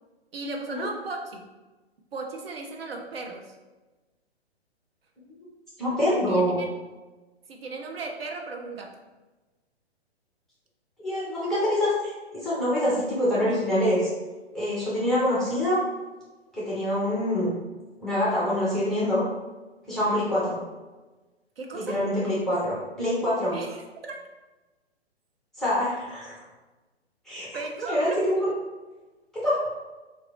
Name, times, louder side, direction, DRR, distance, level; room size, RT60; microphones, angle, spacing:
voice 1, 0.3-1.5 2.1-3.6 6.3-6.7 7.5-9.0 20.0-20.2 21.6-22.0 23.5-24.2 27.5-28.2, right 3 dB, 65° right, 2 dB, 0.6 m, -36 dB
voice 2, 5.8-6.6 11.0-14.1 14.5-15.8 16.5-17.5 18.0-19.2 19.9-20.6 21.7-23.6 25.6-26.4 27.3-27.6 27.9-28.5 29.3-29.7, left 1 dB, ahead, -9 dB, 0.6 m, -25 dB
2.9 x 2.3 x 3.7 m, 1.2 s
figure-of-eight pair, 120°, 33 cm